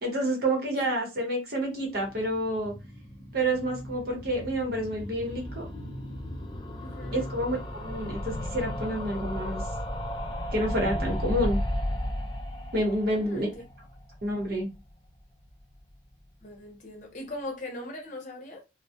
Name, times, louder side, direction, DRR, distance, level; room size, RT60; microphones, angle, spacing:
voice 1, 0.0-2.7 3.3-5.7 7.1-9.6 10.5-11.6 12.7-13.5 14.2-14.7, right 1 dB, 55° right, 0.9 m, -29 dB
sound 1, 1.8-14.9 15.2-15.3 15.5-15.6 15.8-15.9, equal, 25° left, 0.4 m, -35 dB
voice 2, 6.8-7.3 12.8-13.5 16.4-18.6, left 1 dB, 45° left, 0.8 m, -40 dB
2.3 x 2.1 x 2.7 m
head